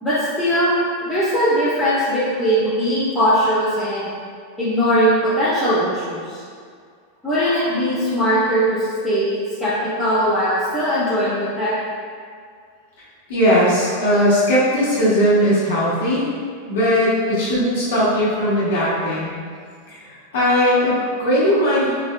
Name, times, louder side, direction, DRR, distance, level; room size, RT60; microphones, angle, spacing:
voice 1, 0.0-0.7 1.1-4.1 4.6-6.4 7.2-9.3 9.6-9.7 10.0-11.7 21.4-21.8, equal, ahead, -14 dB, 1.1 m, -20 dB
voice 2, 13.3-16.3 16.7-19.3 19.9-22.0, equal, 80° left, -8 dB, 1.2 m, -18 dB
3.8 x 2.5 x 2.2 m, 2.1 s
supercardioid pair, 130°, 0 cm